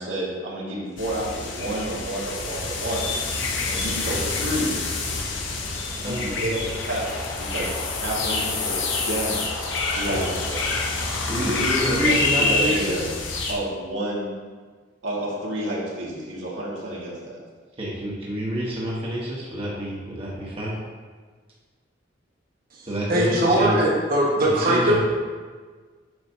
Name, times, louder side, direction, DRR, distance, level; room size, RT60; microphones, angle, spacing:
voice 1, 0.0-3.1 3.7-4.8 6.0-9.6 9.9-10.6 11.4-13.0 13.5-14.3 15.0-17.4, right 1 dB, 85° right, -5 dB, 1.8 m, -29 dB
sound 1, 1.0-13.5, left 3 dB, 75° left, 1.0 m, -27 dB
voice 2, 6.0-6.5 10.0-10.2 11.2-13.1 17.8-20.8 22.9-23.8 24.6-25.0, right 1 dB, 30° right, -5 dB, 1.2 m, -28 dB
voice 3, 22.7-25.0, right 1 dB, 50° right, -5 dB, 1.5 m, -21 dB
8.0 x 6.2 x 2.8 m, 1.5 s
head